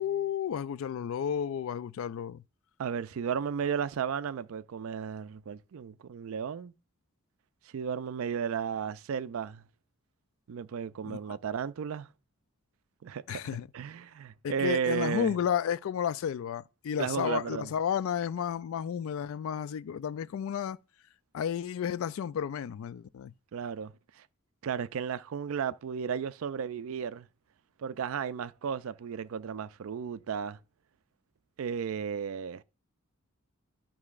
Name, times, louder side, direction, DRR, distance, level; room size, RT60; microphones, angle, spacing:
voice 1, 0.0-2.4 11.0-11.2 13.3-13.7 14.4-20.8 21.3-23.3, left 8 dB, 70° left, 0.3 m, -32 dB
voice 2, 2.8-6.7 7.7-9.6 10.5-12.1 13.0-13.4 13.7-15.4 17.0-17.7 23.5-24.3 24.6-27.3 27.8-30.6 31.6-32.6, right 7 dB, 70° right, 0.4 m, -34 dB
11.5 x 5.5 x 2.4 m
head